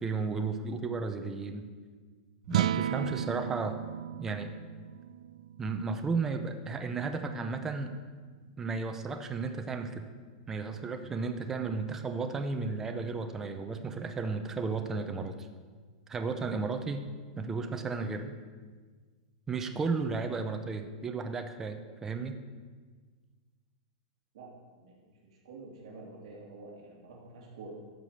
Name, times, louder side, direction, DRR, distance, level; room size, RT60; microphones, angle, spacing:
voice 1, 0.0-1.7 2.5-3.8 4.2-4.5 5.6-7.9 8.6-10.0 10.5-15.5 16.1-17.0 17.4-18.3 19.5-22.4, right 4 dB, 10° right, 6 dB, 0.6 m, -34 dB
sound 1, 2.4-8.8, right 10 dB, 85° right, 0.3 m, -36 dB
voice 2, 24.8-27.7, right 3 dB, 60° right, -3 dB, 2.6 m, -48 dB
12.5 x 5.0 x 7.8 m, 1.5 s
supercardioid pair, 165°, 4 cm